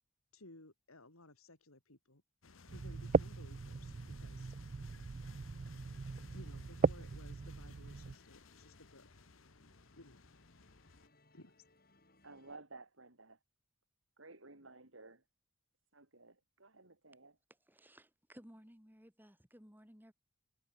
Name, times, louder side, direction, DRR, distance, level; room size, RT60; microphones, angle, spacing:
voice 1, 0.3-2.2 2.7-4.5 6.3-9.3 10.0-10.2 11.3-11.7, left 2 dB, 85° left, 4.0 m, -58 dB
sound 1, 2.4-11.1, left 4 dB, 70° left, 1.3 m, -60 dB
sound 2, 2.7-8.1, right 4 dB, 35° right, 0.3 m, -37 dB
sound 3, 5.8-12.6, left 2 dB, 45° left, 7.3 m, -70 dB
voice 2, 12.2-13.4 14.2-15.2 15.9-17.4, right 3 dB, 70° right, 3.3 m, -55 dB
voice 3, 17.7-20.1, equal, 10° right, 5.8 m, -58 dB
head